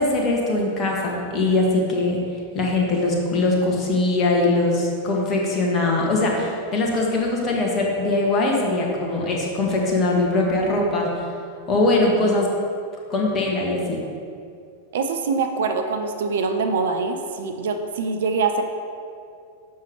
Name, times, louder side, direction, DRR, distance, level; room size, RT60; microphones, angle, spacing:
voice 1, 0.0-2.2 2.5-11.2 11.7-12.5 13.1-14.0, left 2 dB, 30° left, -1 dB, 1.6 m, -21 dB
voice 2, 14.9-18.6, right 4 dB, 60° right, 6 dB, 0.6 m, -24 dB
7.2 x 5.9 x 4.8 m, 2.4 s
figure-of-eight pair, 90°, 0 cm